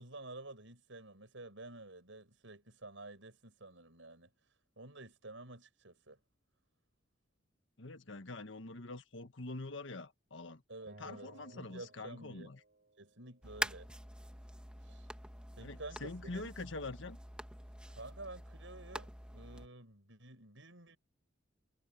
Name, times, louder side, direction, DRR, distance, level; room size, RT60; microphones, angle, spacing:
voice 1, 0.0-4.3 4.8-6.2 10.7-12.5 13.0-13.9 14.8-15.1 15.6-16.5 17.9-21.0, right 2 dB, 75° right, 6.5 m, -51 dB
voice 2, 7.8-10.6 11.0-12.6 15.6-17.2, left 2 dB, 70° left, 1.5 m, -45 dB
Acoustic guitar, 10.9-14.1, right 2 dB, 55° right, 3.5 m, -60 dB
sound 1, 13.4-19.7, right 1 dB, 5° right, 1.9 m, -45 dB
head